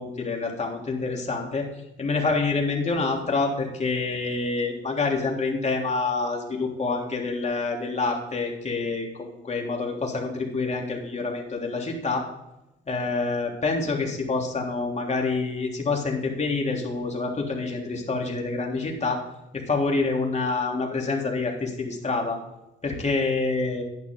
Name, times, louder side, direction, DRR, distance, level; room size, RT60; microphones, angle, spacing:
voice 1, 0.0-1.7 2.0-12.2 12.9-19.2 19.5-22.4 22.8-23.8, left 3 dB, 35° left, 0 dB, 3.4 m, -27 dB
11.0 x 10.5 x 3.9 m, 0.92 s
cardioid pair, 90°, 20 cm